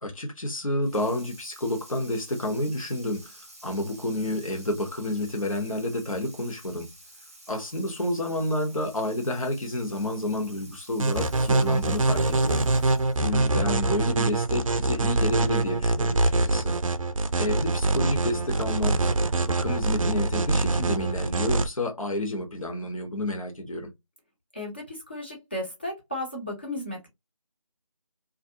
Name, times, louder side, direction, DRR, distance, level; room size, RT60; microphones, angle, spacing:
voice 1, 0.0-6.9 7.5-12.7 13.2-16.7 17.4-19.0 19.4-23.9, left 1 dB, 70° left, 0.9 m, -30 dB
Water tap faucet / Sink (filling or washing), 0.8-13.3, right 1 dB, 25° right, 0.7 m, -50 dB
sound 1, 11.0-21.7, right 2 dB, 70° right, 0.4 m, -24 dB
voice 2, 24.5-27.1, left 1 dB, 20° left, 0.6 m, -34 dB
2.4 x 2.0 x 2.6 m
figure-of-eight pair, 170°, 18 cm